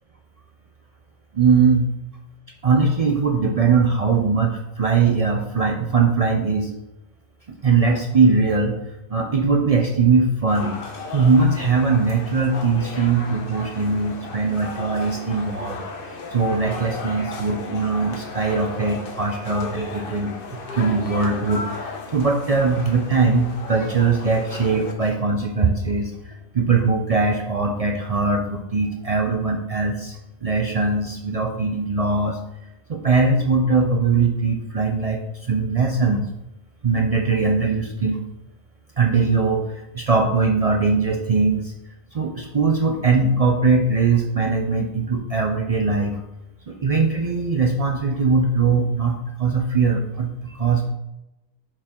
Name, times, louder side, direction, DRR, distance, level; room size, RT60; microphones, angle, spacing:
voice 1, 1.3-1.8 2.6-6.7 7.6-8.8 9.1-10.8 11.1-15.8 16.3-20.4 20.7-21.7 22.1-32.4 32.9-36.3 36.8-38.2 39.0-39.7 39.9-41.7 42.1-46.2 46.7-50.9, right 4 dB, 60° right, 2 dB, 0.3 m, -20 dB
sound 1, 10.5-24.9, left 3 dB, 50° left, 0.9 m, -35 dB
6.0 x 4.4 x 3.7 m, 0.92 s
omnidirectional pair, 1.3 m